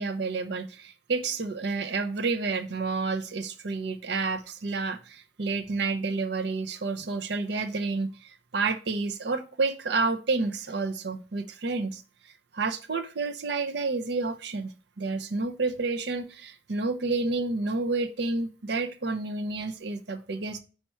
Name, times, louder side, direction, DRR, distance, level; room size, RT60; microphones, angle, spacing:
voice 1, 0.0-12.0 12.5-20.6, right 3 dB, 55° right, 9 dB, 0.6 m, -30 dB
5.7 x 4.5 x 4.3 m, 0.36 s
head